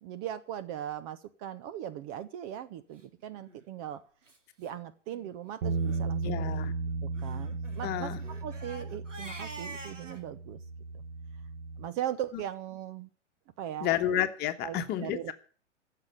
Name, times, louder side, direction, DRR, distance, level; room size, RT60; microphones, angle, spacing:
voice 1, 0.0-4.0 4.6-6.7 7.0-8.1 8.4-10.6 10.9-11.0 11.8-13.1 13.6-13.9 14.6-15.3, right 11 dB, 30° right, 12 dB, 0.8 m, -39 dB
Crying sobbing, 3.3-3.6 4.3-4.4 4.6-4.7 5.1-5.3 5.8-6.0 7.2-10.2, right 2 dB, 90° right, 2.6 m, -46 dB
sound 1, 5.6-11.9, right 4 dB, 45° right, 1.4 m, -35 dB
voice 2, 6.2-6.7 7.8-8.2 13.8-15.3, left 11 dB, 25° left, 8 dB, 1.5 m, -30 dB
15.0 x 6.8 x 10.0 m, 0.43 s
figure-of-eight pair, 115°, 36 cm